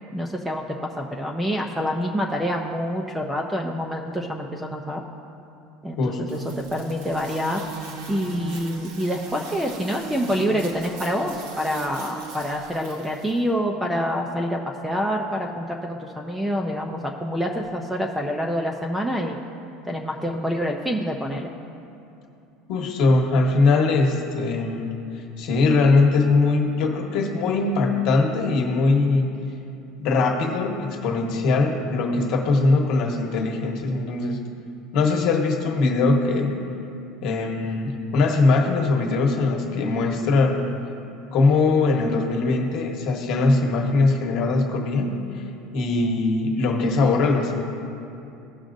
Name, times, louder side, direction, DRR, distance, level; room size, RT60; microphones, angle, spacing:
voice 1, 0.1-0.6 1.0-5.0 5.8-6.4 6.7-7.6 8.1-19.4 19.9-21.5, equal, 5° right, 1 dB, 0.4 m, -27 dB
voice 2, 6.0-6.4 22.7-24.9 25.4-29.3 30.0-34.4 34.9-36.5 37.2-40.7 41.3-45.4 45.7-47.6, left 3 dB, 45° left, 2 dB, 1.1 m, -21 dB
sound 1, 6.3-13.4, right 3 dB, 65° right, 1.1 m, -38 dB
16.5 x 6.2 x 2.6 m, 2.7 s
cardioid pair, 175°, 0 cm